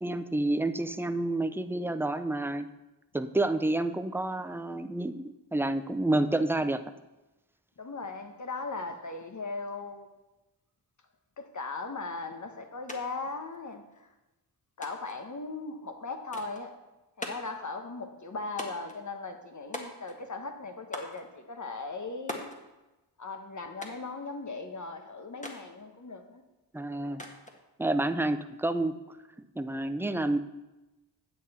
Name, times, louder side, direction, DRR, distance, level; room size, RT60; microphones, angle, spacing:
voice 1, 0.0-2.7 3.1-6.8 26.7-27.3 27.8-29.0 29.6-30.4, right 2 dB, 5° right, 10 dB, 0.6 m, -29 dB
voice 2, 7.8-10.1 11.4-14.1 14.8-16.7 17.2-22.5 23.2-26.4, left 3 dB, 40° left, 5 dB, 1.3 m, -38 dB
sound 1, 12.9-13.0 13.3-14.0 14.8-15.2 16.3-16.6 17.2-17.6 18.6-19.0 19.7-20.3 20.9-21.2 22.3-22.6 23.8-24.1 25.4-25.6 27.2-27.6, left 1 dB, 15° left, 1.6 m, -40 dB
9.4 x 7.8 x 4.2 m, 1.0 s
cardioid pair, 55°, 43 cm